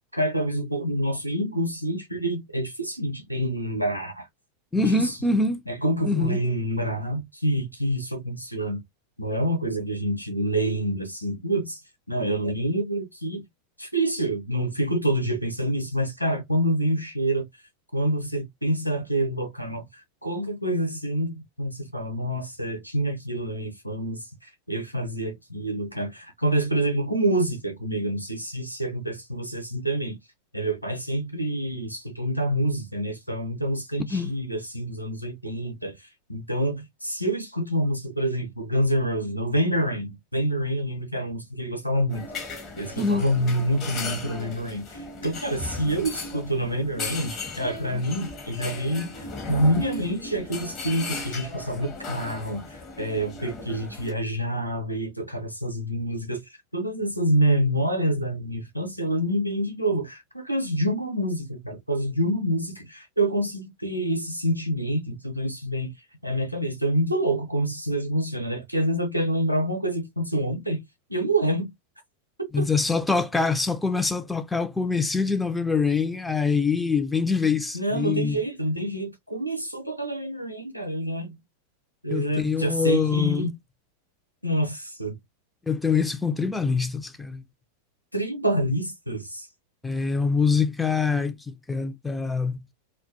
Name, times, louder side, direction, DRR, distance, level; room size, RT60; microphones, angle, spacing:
voice 1, 0.1-4.3 4.8-5.2 5.7-8.8 9.2-11.8 12.1-13.4 13.8-17.5 17.9-19.8 20.2-30.2 30.5-35.9 36.3-42.3 42.8-56.4 56.7-65.9 66.2-70.8 71.1-71.7 72.6-72.7 77.7-81.4 82.0-83.5 84.4-85.1 88.1-89.5, right 1 dB, 90° right, 0.5 m, -27 dB
voice 2, 4.7-5.6 6.0-6.4 34.1-34.3 43.0-43.2 72.5-78.4 82.1-83.5 85.7-87.4 89.8-92.6, left 4 dB, 10° left, 0.3 m, -24 dB
sound 1, 42.1-54.1, left 3 dB, 35° left, 0.8 m, -36 dB
2.2 x 2.1 x 2.6 m
figure-of-eight pair, 90°, 0 cm